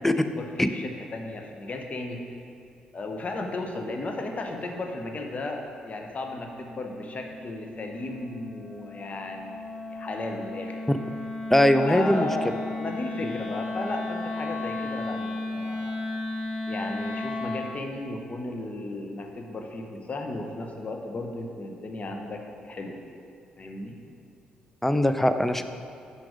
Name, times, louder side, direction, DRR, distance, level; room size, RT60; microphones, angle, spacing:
voice 1, 0.0-2.4 2.9-10.8 11.8-16.0 16.7-23.0 23.6-24.0, left 2 dB, 40° left, 3 dB, 1.0 m, -35 dB
Wind instrument woodwind instrument, 6.2-17.7, left 2 dB, 65° left, 1.9 m, -35 dB
voice 2, 11.5-12.3 13.2-13.3 24.8-25.6, left 1 dB, 10° left, 9 dB, 0.5 m, -21 dB
6.1 x 5.7 x 4.9 m, 2.4 s
hypercardioid pair, 45°, 3 cm